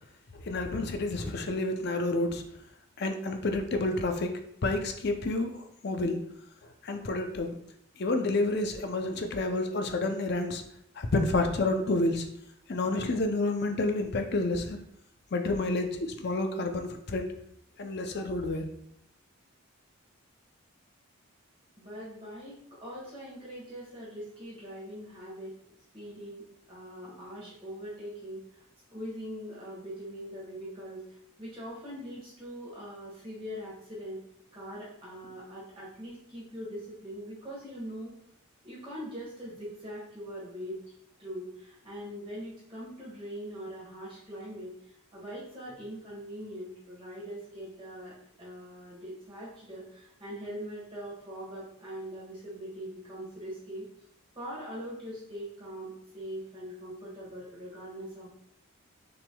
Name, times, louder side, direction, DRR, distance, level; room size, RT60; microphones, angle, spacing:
voice 1, 0.4-2.4 3.0-6.2 6.8-7.5 8.0-10.6 11.0-12.3 12.7-14.8 15.3-17.3 17.8-18.7, left 2 dB, 50° left, 6 dB, 0.5 m, -29 dB
voice 2, 21.8-25.6 25.9-28.6 28.9-31.0 31.4-34.2 34.5-38.1 38.6-40.8 41.2-53.9 54.3-58.3, equal, 25° right, -7 dB, 1.4 m, -42 dB
5.8 x 3.5 x 2.2 m, 0.72 s
head